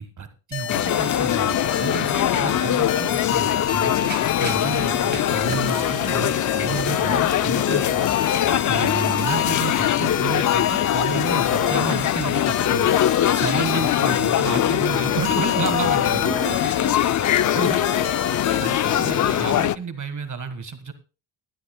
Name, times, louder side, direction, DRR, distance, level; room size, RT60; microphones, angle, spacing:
voice 1, 0.0-4.1 4.4-8.0 8.5-12.9 13.3-16.4 17.5-17.8 18.6-20.9, right 6 dB, 40° right, 9 dB, 1.6 m, -31 dB
sound 1, 0.5-19.6, left 9 dB, 85° left, 2.0 m, -29 dB
sound 2, 0.7-19.8, left 11 dB, 40° left, 0.5 m, -22 dB
Run, 3.1-8.7, right 4 dB, 20° right, 1.3 m, -40 dB
voice 2, 16.1-19.3, left 1 dB, 25° left, 7 dB, 2.6 m, -37 dB
18.5 x 12.0 x 2.3 m, 0.32 s
cardioid pair, 85°, 47 cm